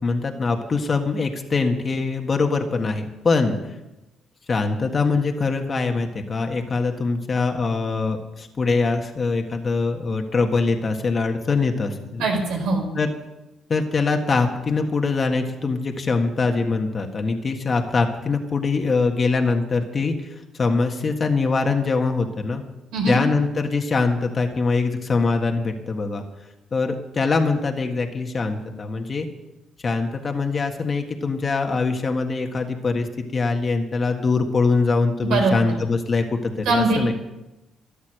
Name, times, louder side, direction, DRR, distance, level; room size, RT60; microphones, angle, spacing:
voice 1, 0.0-3.6 4.5-12.2 13.0-13.1 13.7-22.6 23.1-26.2 26.7-29.3 29.8-37.1, left 4 dB, 40° left, 4 dB, 1.6 m, -23 dB
voice 2, 12.2-12.9 22.9-23.2 35.2-35.6 36.6-37.1, right 3 dB, 90° right, 2 dB, 4.6 m, -21 dB
13.5 x 11.0 x 6.6 m, 0.98 s
cardioid pair, 90°, 0 cm